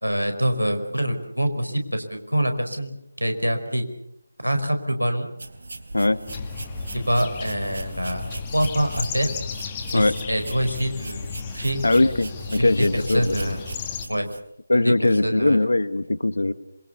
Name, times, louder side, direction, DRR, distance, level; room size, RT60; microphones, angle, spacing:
voice 1, 0.0-3.9 4.4-5.3 6.9-8.2 8.5-9.3 9.9-11.2 11.5-11.8 12.6-12.8 13.1-13.6 14.1-14.3 14.7-14.9 15.2-15.6, equal, 90° right, 7 dB, 4.8 m, -25 dB
sound 1, 5.4-14.4, right 2 dB, 60° right, 3.4 m, -39 dB
sound 2, 6.3-14.0, left 5 dB, 20° left, 2.0 m, -34 dB
voice 2, 11.8-13.6 14.7-16.5, left 2 dB, 65° left, 13 dB, 1.6 m, -21 dB
27.0 x 23.5 x 7.0 m, 0.79 s
figure-of-eight pair, 155°, 0 cm